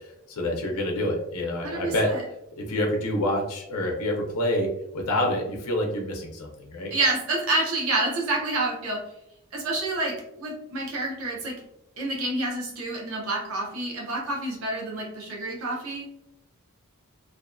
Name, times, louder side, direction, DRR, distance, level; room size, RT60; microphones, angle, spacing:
voice 1, 0.3-2.1 2.5-4.7 4.9-6.9, left 1 dB, 85° left, 2 dB, 0.5 m, -27 dB
voice 2, 1.6-2.2 6.9-9.0 9.5-11.6 12.0-16.1, right 2 dB, 70° right, -2 dB, 0.6 m, -28 dB
2.5 x 2.2 x 2.4 m, 0.81 s
head